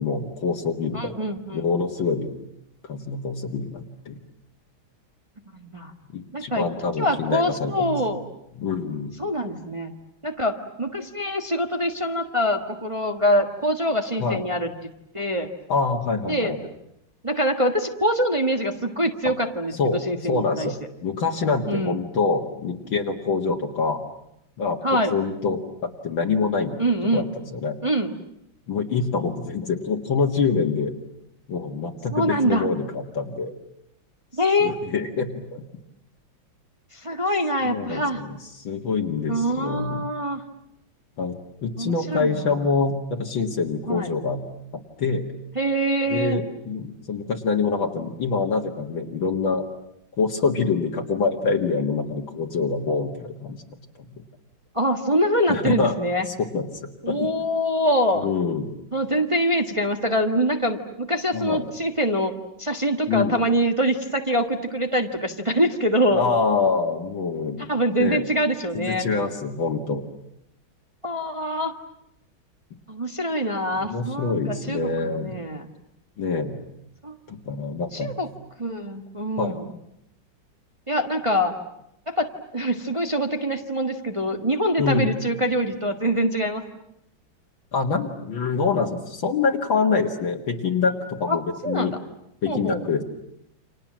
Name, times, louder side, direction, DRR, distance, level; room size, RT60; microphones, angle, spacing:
voice 1, 0.0-1.1 1.5-2.3 2.8-4.2 6.1-8.0 8.6-9.1 14.2-14.4 15.7-16.6 19.8-20.0 20.3-20.7 21.0-24.0 24.6-24.8 25.1-26.8 27.1-27.8 28.7-30.9 31.5-33.5 34.6-35.6 37.6-40.0 41.2-41.4 41.6-44.4 45.0-45.3 46.1-49.6 50.2-53.6 54.0-54.2 55.5-56.0 56.3-56.6 57.1-57.3 58.1-58.7 61.3-61.7 63.1-63.4 66.1-67.7 68.0-68.2 68.8-70.0 73.8-75.4 76.2-76.6 77.3-78.2 79.4-79.6 84.8-85.1 87.7-91.9 92.4-93.0, left 4 dB, 65° left, 1 dB, 2.5 m, -25 dB
voice 2, 0.9-1.6 5.5-5.9 6.3-6.7 7.0-8.2 9.2-9.9 10.2-15.5 16.3-16.7 17.2-20.7 21.7-22.0 24.8-25.1 26.8-27.3 27.8-28.1 32.1-32.6 34.3-34.7 36.9-38.2 39.3-40.4 41.8-42.6 43.9-44.1 45.5-46.4 54.7-56.3 57.0-58.3 58.9-62.3 62.6-66.2 67.7-69.1 71.0-71.7 72.9-75.7 77.0-77.2 77.9-78.3 78.6-79.7 80.9-81.5 82.1-86.6 91.3-92.0 92.5-92.8, equal, 15° right, 4 dB, 1.4 m, -24 dB
30.0 x 27.0 x 7.5 m, 0.80 s
omnidirectional pair, 2.3 m